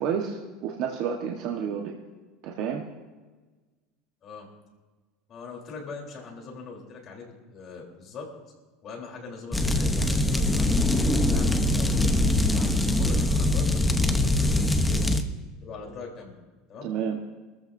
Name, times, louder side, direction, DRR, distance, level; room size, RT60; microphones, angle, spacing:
voice 1, 0.0-2.0 2.4-2.8 16.8-17.2, right 7 dB, 55° right, 0 dB, 1.3 m, -30 dB
voice 2, 5.3-8.3 8.8-15.1 15.6-16.3 16.7-16.9, left 4 dB, 35° left, -1 dB, 3.7 m, -42 dB
sound 1, 9.5-15.2, left 1 dB, 5° left, 0.9 m, -23 dB
26.0 x 14.0 x 2.7 m, 1.3 s
supercardioid pair, 150°, 0 cm